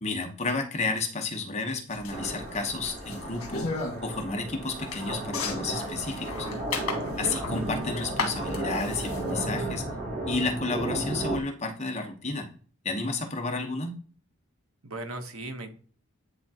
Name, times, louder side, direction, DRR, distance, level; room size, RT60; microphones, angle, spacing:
voice 1, 0.0-3.7 4.0-6.5 7.2-9.9 10.2-12.5 12.8-14.0, left 3 dB, 30° left, 3 dB, 0.9 m, -31 dB
sound 1, 1.9-9.6, left 4 dB, 80° left, 1.5 m, -36 dB
sound 2, 2.1-11.4, right 1 dB, 40° right, 1.6 m, -34 dB
voice 2, 7.0-7.4 14.8-15.7, right 2 dB, 70° right, 6 dB, 1.0 m, -37 dB
10.0 x 3.6 x 2.8 m, 0.43 s
head